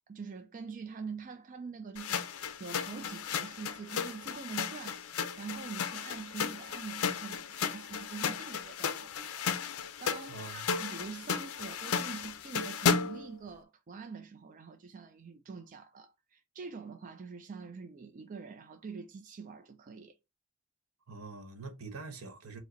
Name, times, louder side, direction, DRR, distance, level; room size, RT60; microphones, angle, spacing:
voice 1, 0.1-20.2, right 5 dB, 35° right, 0.4 m, -45 dB
sound 1, 2.0-13.3, left 6 dB, 75° left, 0.5 m, -34 dB
voice 2, 10.3-10.7 21.1-22.6, right 3 dB, 80° right, 1.1 m, -44 dB
4.8 x 2.1 x 3.9 m
head